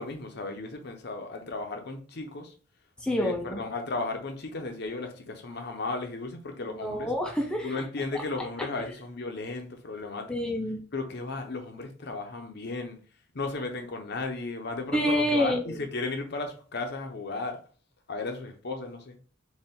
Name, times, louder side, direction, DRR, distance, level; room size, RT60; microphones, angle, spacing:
voice 1, 0.0-2.5 3.2-7.1 7.6-10.3 10.9-13.0 13.3-17.6 18.1-19.1, left 3 dB, 55° left, 0.7 m, -35 dB
voice 2, 3.0-3.6 6.7-7.7 10.3-10.8 14.9-15.8, equal, 5° left, 0.5 m, -27 dB
4.2 x 2.4 x 3.6 m
head